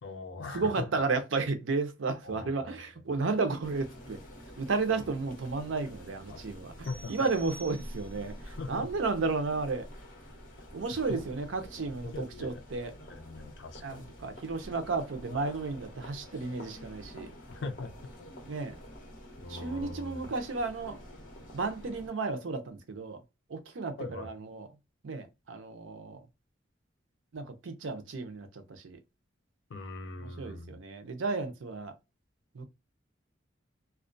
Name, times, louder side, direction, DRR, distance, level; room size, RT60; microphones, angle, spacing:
voice 1, 0.0-0.9 2.2-2.8 6.3-6.5 6.9-7.1 8.4-8.9 10.6-11.2 12.0-12.6 13.1-14.1 17.5-18.1 19.4-20.3 24.0-24.3 29.7-30.8, left 3 dB, 60° left, 0.5 m, -41 dB
voice 2, 0.5-4.2 4.5-6.7 7.1-9.9 10.7-12.9 13.8-17.3 18.5-18.8 19.5-21.0 21.5-23.2 23.5-24.7 25.0-26.2 27.3-29.0 30.2-31.9 32.5-32.7, right 3 dB, 75° right, 0.5 m, -33 dB
sound 1, 3.6-22.1, equal, 45° left, 0.9 m, -48 dB
sound 2, 6.8-8.4, right 3 dB, 10° right, 1.4 m, -51 dB
2.3 x 2.1 x 2.4 m
head